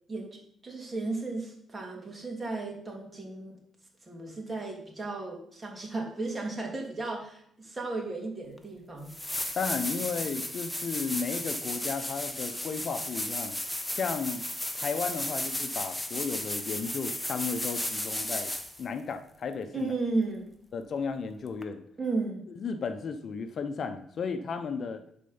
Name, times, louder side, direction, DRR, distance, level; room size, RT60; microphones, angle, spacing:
voice 1, 0.1-3.6 4.1-9.1 19.7-20.5 22.0-22.4, right 3 dB, 25° right, 0 dB, 2.8 m, -34 dB
sound 1, 8.6-8.7 9.1-18.8 21.6-21.7, left 1 dB, 5° left, 1.1 m, -34 dB
voice 2, 9.6-13.6 13.9-14.4 14.7-18.5 18.8-19.9 20.7-21.8 22.6-25.0, left 5 dB, 55° left, 8 dB, 0.7 m, -34 dB
11.0 x 4.4 x 5.5 m, 0.68 s
cardioid pair, 90°, 0 cm